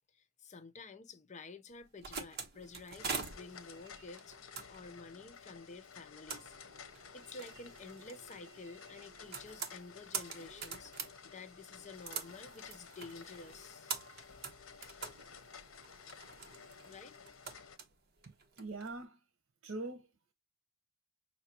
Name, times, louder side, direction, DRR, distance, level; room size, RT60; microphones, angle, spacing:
voice 1, 0.0-4.4 4.7-6.6 7.1-11.0 11.2-13.9 16.8-17.2, left 3 dB, 35° left, 0.6 m, -51 dB
sound 1, 1.7-18.9, right 5 dB, 50° right, 1.1 m, -46 dB
sound 2, 3.0-17.8, left 6 dB, 75° left, 0.8 m, -54 dB
voice 2, 18.2-19.2 19.6-20.1, right 2 dB, 85° right, 1.0 m, -43 dB
5.8 x 2.7 x 2.8 m
head